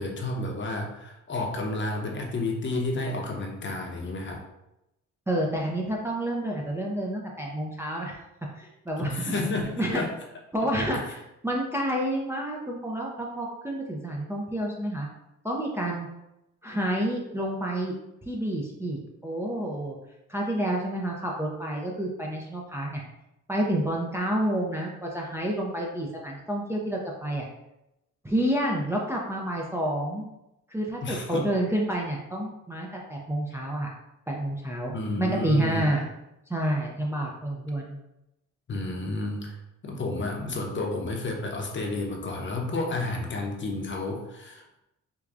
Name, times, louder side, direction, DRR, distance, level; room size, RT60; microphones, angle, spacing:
voice 1, 0.0-4.4 9.0-10.1 31.0-31.5 34.9-35.8 38.7-39.6 39.8-44.6, left 2 dB, 40° left, 0 dB, 0.8 m, -31 dB
voice 2, 5.3-8.2 8.6-9.3 9.8-10.0 10.5-15.1 15.4-16.1 16.6-17.9 18.3-20.0 20.3-23.0 23.5-27.5 28.2-30.3 30.7-33.9 34.3-36.0 36.5-37.9, right 1 dB, 10° right, -2 dB, 0.5 m, -29 dB
4.6 x 2.3 x 2.5 m, 0.89 s
cardioid pair, 90°, 30 cm